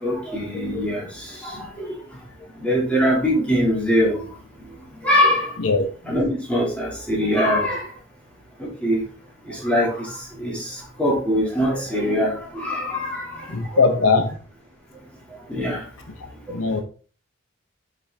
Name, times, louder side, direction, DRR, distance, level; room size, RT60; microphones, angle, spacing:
voice 1, 0.0-1.9 2.6-4.3 5.0-5.6 6.0-7.8 8.6-9.0 9.5-10.1 10.4-10.7 11.0-13.4 13.7-13.8 15.5-15.8, equal, 5° left, 2.2 m, -22 dB
voice 2, 13.5-14.4 16.5-16.8, left 4 dB, 80° left, 0.8 m, -19 dB
5.6 x 5.0 x 3.4 m
head